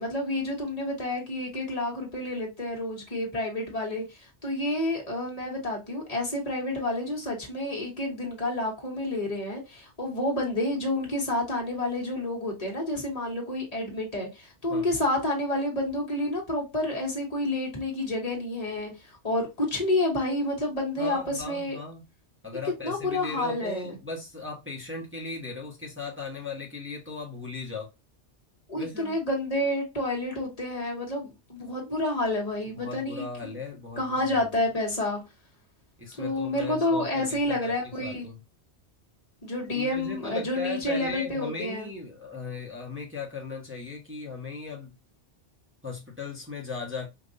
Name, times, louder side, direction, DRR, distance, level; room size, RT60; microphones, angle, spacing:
voice 1, 0.0-21.8 22.8-23.9 28.7-33.3 34.0-35.2 36.1-38.3 39.4-41.9, left 1 dB, 35° left, 1.5 m, -29 dB
voice 2, 21.0-22.0 22.4-27.9 28.8-29.2 32.7-34.5 36.0-37.7 38.0-38.4 39.7-44.9 45.8-47.1, left 4 dB, 10° right, 1.1 m, -37 dB
5.2 x 2.5 x 2.6 m
omnidirectional pair, 1.2 m